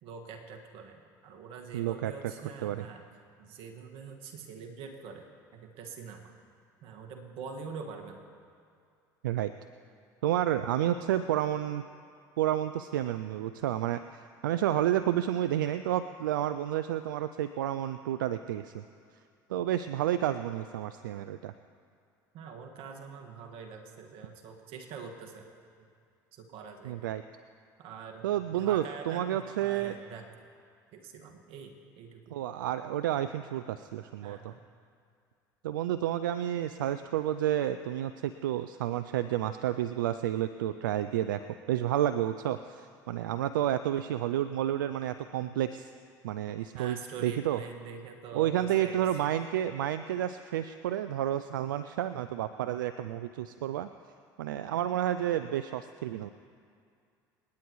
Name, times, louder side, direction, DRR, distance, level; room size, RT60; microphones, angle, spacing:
voice 1, 0.0-3.0 3.4-6.2 6.8-8.2 22.3-25.5 25.8-25.9 26.3-27.1 27.8-28.3 28.5-30.3 30.9-32.4 34.2-34.6 46.7-49.3, right 5 dB, 60° right, 3 dB, 1.8 m, -45 dB
voice 2, 1.7-2.1 2.6-2.8 9.2-9.5 10.2-11.8 12.4-18.8 19.5-21.5 26.8-27.2 28.2-29.9 32.3-34.5 35.6-45.9 46.2-47.0 47.2-47.6 48.3-53.9 54.4-56.3, right 12 dB, 85° right, 12 dB, 0.4 m, -30 dB
28.0 x 9.7 x 3.1 m, 2.3 s
hypercardioid pair, 70°, 10 cm